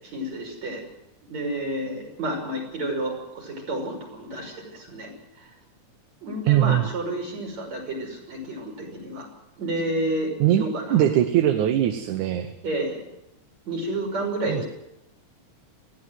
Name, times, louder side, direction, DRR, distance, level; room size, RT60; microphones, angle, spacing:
voice 1, 0.0-0.8 1.2-5.1 5.4-5.5 6.2-9.3 9.6-11.0 12.6-13.0 13.7-14.7, right 1 dB, 60° right, 1 dB, 7.3 m, -30 dB
voice 2, 6.5-6.9 10.4-12.5 14.5-14.6, right 11 dB, 80° right, 8 dB, 2.5 m, -21 dB
20.0 x 15.5 x 9.3 m, 0.86 s
omnidirectional pair, 3.5 m